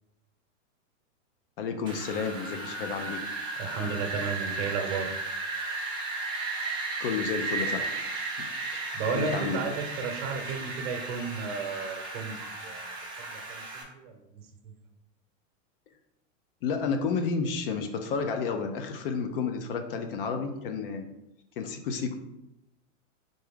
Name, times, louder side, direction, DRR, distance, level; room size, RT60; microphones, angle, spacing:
voice 1, 1.6-3.2 7.0-8.1 8.4-8.8 9.1-9.6 16.6-21.0 21.6-22.1, left 5 dB, 45° left, 7 dB, 0.5 m, -31 dB
Wind, 1.9-13.8, right 3 dB, 10° right, 1.0 m, -35 dB
voice 2, 3.6-5.1 8.9-14.7, right 5 dB, 50° right, 4 dB, 0.9 m, -34 dB
3.9 x 3.4 x 3.6 m, 0.89 s
supercardioid pair, 160°, 38 cm